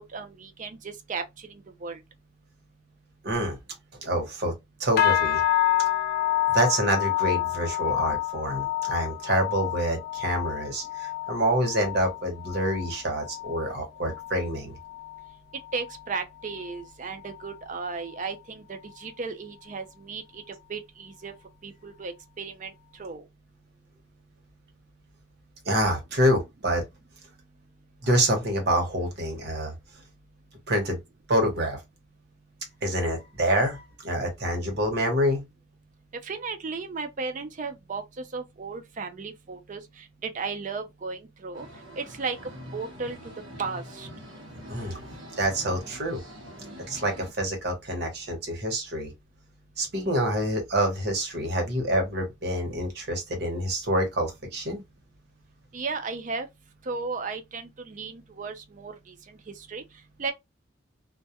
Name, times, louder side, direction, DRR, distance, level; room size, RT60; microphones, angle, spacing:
voice 1, 0.0-2.0 15.7-20.4 20.7-21.3 21.6-23.2 36.2-41.7 42.0-43.2 43.6-44.1 55.7-56.5 56.8-59.8 60.2-60.3, right 4 dB, 40° right, 0.4 m, -35 dB
voice 2, 3.2-3.6 4.0-4.5 4.8-5.4 6.5-14.7 25.6-26.8 28.0-29.7 30.7-31.0 31.3-31.8 32.8-35.4 44.7-45.0 45.4-46.2 46.9-49.1 49.8-54.8, right 1 dB, 55° right, 0.9 m, -27 dB
sound 1, 5.0-14.5 14.8-15.3 15.7-16.0 16.5-16.6, left 13 dB, 50° left, 0.3 m, -28 dB
sound 2, 41.5-47.3, equal, 80° right, 0.9 m, -44 dB
2.2 x 2.1 x 2.7 m
head